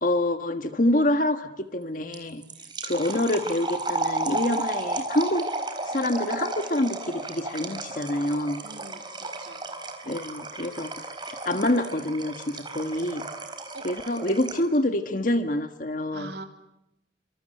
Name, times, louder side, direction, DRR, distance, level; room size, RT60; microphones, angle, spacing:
voice 1, 0.0-2.4 2.8-5.5 5.8-8.6 10.0-10.9 11.3-13.2 13.8-16.3, left 1 dB, 45° left, 8 dB, 1.6 m, -26 dB
sound 1, 2.1-14.8, right 2 dB, 25° right, 4.4 m, -33 dB
voice 2, 8.6-9.6 13.7-13.9 16.1-16.4, right 2 dB, 65° right, 5 dB, 3.6 m, -42 dB
28.0 x 26.5 x 8.0 m, 0.85 s
head